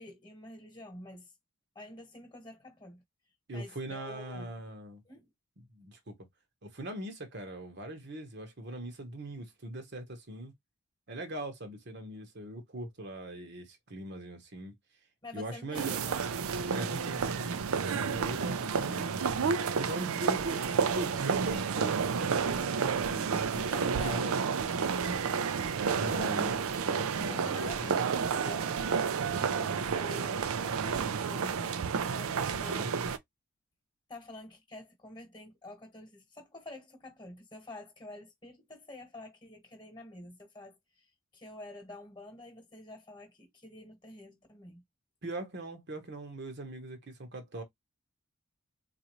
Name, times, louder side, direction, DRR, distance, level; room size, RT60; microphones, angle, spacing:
voice 1, 0.0-1.3 1.7-3.0 3.5-4.5 5.0-5.3 15.2-16.4 23.7-25.1 27.2-28.8 29.3-31.7 32.1-32.9 34.1-44.8, left 2 dB, 20° left, 1.2 m, -48 dB
voice 2, 3.5-5.0 5.7-6.1 6.6-10.5 11.1-14.7 15.3-16.0 16.7-17.5 17.9-19.4 19.8-20.6 21.0-23.7 24.1-24.4 25.9-28.0 32.5-32.9 45.2-47.6, right 1 dB, 50° right, 1.0 m, -40 dB
sound 1, 15.7-33.2, right 6 dB, 85° right, 0.5 m, -31 dB
4.0 x 2.5 x 3.0 m
head